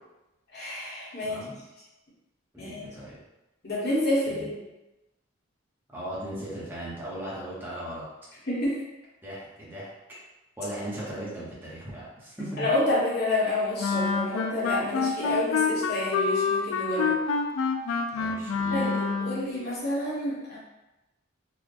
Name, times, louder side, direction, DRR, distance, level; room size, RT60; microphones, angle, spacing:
voice 1, 0.5-1.4 2.6-2.9 3.6-4.6 8.4-8.8 12.6-17.2 18.7-20.6, left 1 dB, 50° left, -7 dB, 1.2 m, -29 dB
voice 2, 1.2-1.6 2.5-3.2 4.3-4.5 5.9-8.0 9.2-9.9 10.6-12.7 18.2-18.9, right 1 dB, 10° right, -8 dB, 0.9 m, -37 dB
Wind instrument woodwind instrument, 13.8-19.5, left 5 dB, 75° left, 0.4 m, -27 dB
4.1 x 2.3 x 3.2 m, 1.0 s
head